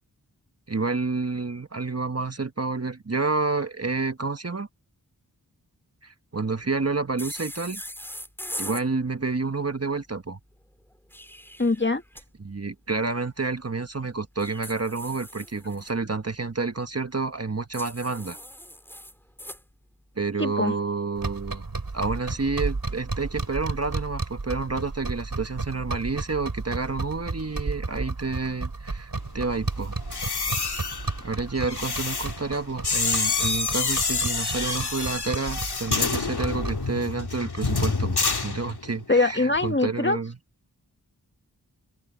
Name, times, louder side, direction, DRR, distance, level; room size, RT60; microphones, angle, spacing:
voice 1, 0.7-4.7 6.0-7.8 8.6-10.4 12.4-18.4 20.2-21.7 21.9-30.0 31.2-40.4, right 4 dB, 40° right, 1.3 m, -29 dB
sound 1, 7.2-8.9 10.9-12.2 14.4-15.9 17.7-19.6, equal, 5° left, 5.1 m, -40 dB
voice 2, 11.6-12.0 20.4-20.7 39.1-40.2, left 3 dB, 30° left, 1.6 m, -23 dB
sound 2, 21.2-36.9, right 3 dB, 60° right, 5.4 m, -33 dB
sound 3, 30.0-39.1 39.4-39.7, left 4 dB, 75° left, 3.1 m, -28 dB
open air
wide cardioid pair, 45°, 39 cm